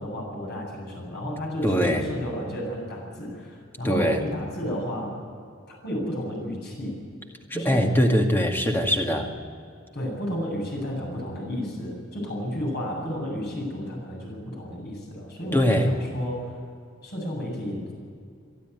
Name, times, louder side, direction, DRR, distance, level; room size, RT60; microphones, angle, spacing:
voice 1, 0.0-5.2 5.7-7.0 7.5-7.9 9.9-16.6 17.0-18.0, equal, 50° left, -1 dB, 7.8 m, -32 dB
voice 2, 1.6-2.1 3.8-4.2 7.5-9.3 15.5-15.9, equal, 10° left, 2 dB, 2.1 m, -22 dB
24.0 x 12.5 x 9.5 m, 2.3 s
head